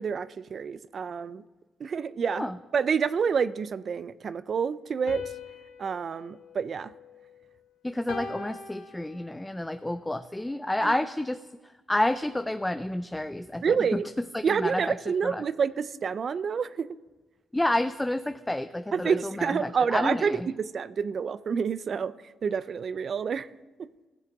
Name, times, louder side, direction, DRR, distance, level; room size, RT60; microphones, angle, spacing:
voice 1, 0.0-1.4 1.8-5.2 5.8-6.9 10.8-11.0 13.6-14.1 14.4-17.0 18.9-22.1 22.4-23.5 23.8-23.9, right 6 dB, 50° right, 16 dB, 0.4 m, -28 dB
sound 1, 5.1-7.5 8.1-9.6, left 5 dB, 85° left, 1.0 m, -42 dB
voice 2, 7.8-11.4 11.9-13.6 13.9-14.0 14.3-15.0 15.2-15.4 17.5-20.5, left 1 dB, 10° left, 11 dB, 0.4 m, -29 dB
16.0 x 7.5 x 3.9 m, 1.2 s
cardioid pair, 85°, 0 cm